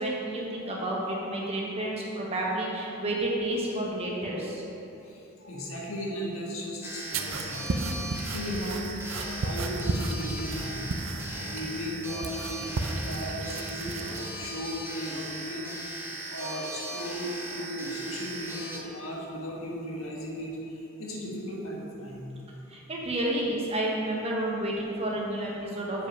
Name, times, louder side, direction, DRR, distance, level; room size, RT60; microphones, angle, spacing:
voice 1, 0.0-4.6 22.7-26.1, right 1 dB, 30° right, -3 dB, 1.2 m, -30 dB
voice 2, 5.0-7.9 8.3-8.8 9.2-10.8 11.2-15.7 16.3-22.3, equal, 85° left, -2 dB, 1.4 m, -36 dB
sound 1, 6.8-18.8, right 1 dB, 10° right, 1.0 m, -38 dB
Grating cheese, 7.1-14.5, right 2 dB, 70° right, 0.5 m, -34 dB
7.5 x 5.1 x 5.4 m, 3.0 s
head